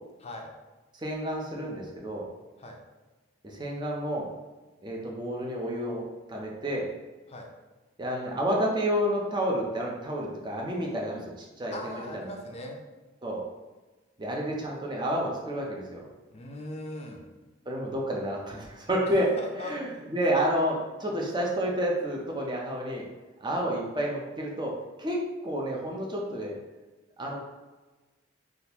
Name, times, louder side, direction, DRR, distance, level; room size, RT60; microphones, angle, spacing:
voice 1, 0.2-0.5 2.6-2.8 7.3-7.5 11.7-12.8 16.3-17.2 19.4-19.7, left 1 dB, 30° left, 1 dB, 0.4 m, -39 dB
voice 2, 0.9-2.3 3.4-4.3 4.8-6.0 6.3-6.9 8.0-12.3 13.2-13.4 14.2-16.1 17.7-19.3 19.6-23.0 23.4-24.7 25.0-25.2 25.4-26.6 27.2-27.4, equal, 25° right, -2 dB, 0.5 m, -30 dB
3.7 x 2.4 x 2.8 m, 1.2 s
head